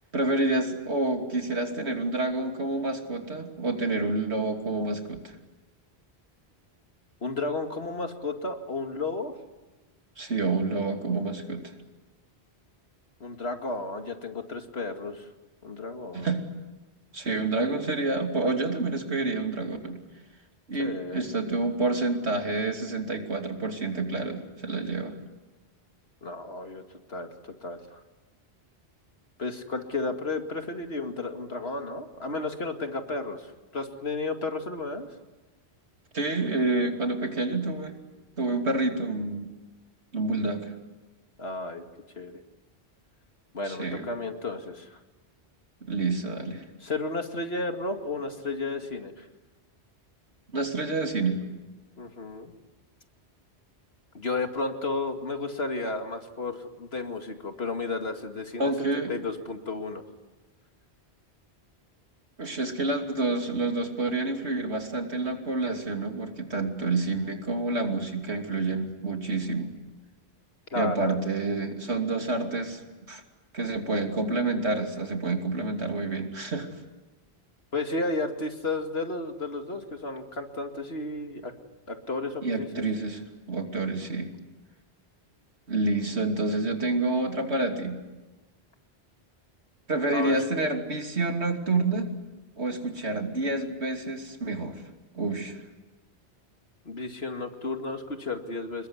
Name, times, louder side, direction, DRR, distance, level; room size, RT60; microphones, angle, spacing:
voice 1, 0.1-5.4 10.2-11.7 16.1-16.4 17.1-20.0 20.7-25.1 36.1-37.9 38.4-39.5 40.1-40.7 43.7-44.1 45.9-46.6 50.5-51.4 58.6-59.1 62.4-69.7 70.7-72.8 73.1-73.2 73.5-76.7 82.4-83.2 83.5-84.3 85.7-88.0 89.9-92.1 92.6-94.8 95.1-95.6, right 2 dB, 85° right, 3 dB, 3.2 m, -28 dB
voice 2, 7.2-9.3 13.2-15.3 15.6-16.3 20.8-21.2 26.2-26.8 27.1-27.3 27.6-28.0 29.4-35.1 41.4-41.8 42.2-42.4 43.5-45.0 46.8-49.3 52.0-52.5 54.1-60.0 70.7-71.2 77.7-81.5 81.9-82.7 90.1-90.4 96.9-98.9, left 3 dB, 70° left, 5 dB, 2.5 m, -33 dB
28.0 x 21.5 x 9.8 m, 1.2 s
omnidirectional pair, 1.1 m